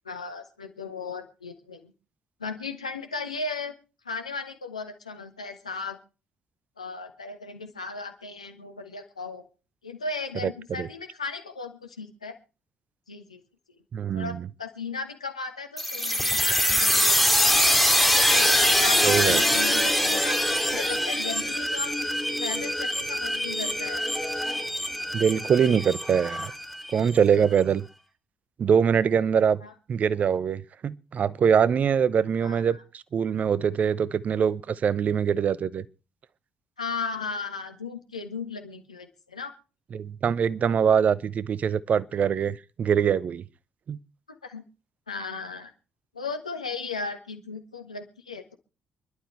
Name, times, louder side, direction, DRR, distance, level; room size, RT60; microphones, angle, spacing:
voice 1, 0.0-1.9 2.4-3.7 4.0-6.0 6.8-9.4 9.8-12.4 13.1-13.4 14.1-17.2 17.5-17.7 18.3-21.9 22.4-24.1 29.6-29.7 32.4-32.8 36.8-39.5 44.4-44.6 45.1-45.7 46.1-48.5, left 4 dB, 90° left, 1.4 m, -36 dB
voice 2, 13.9-14.5 19.0-19.4 25.1-26.5 26.9-27.8 28.6-29.6 29.9-35.8 39.9-43.4 43.9-44.0, right 7 dB, 45° right, 0.8 m, -23 dB
sound 1, 15.8-27.2, equal, ahead, 2.7 m, -24 dB
27.0 x 11.5 x 3.3 m
figure-of-eight pair, 45°, 3 cm